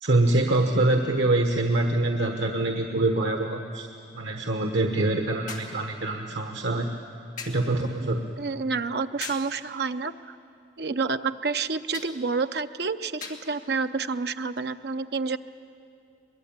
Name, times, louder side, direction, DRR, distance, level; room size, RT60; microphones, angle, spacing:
voice 1, 0.0-3.9 4.1-6.9 7.5-8.2, right 2 dB, 85° right, 4 dB, 1.2 m, -24 dB
sound 1, 1.7-1.8 5.5-5.8 7.4-7.7 9.2-9.5 11.9-12.2 13.2-13.5 14.6-14.7, left 5 dB, 45° left, 2.5 m, -39 dB
voice 2, 8.4-10.4 10.8-15.4, right 4 dB, 65° right, 9 dB, 0.7 m, -29 dB
23.0 x 21.5 x 8.8 m, 2.6 s
head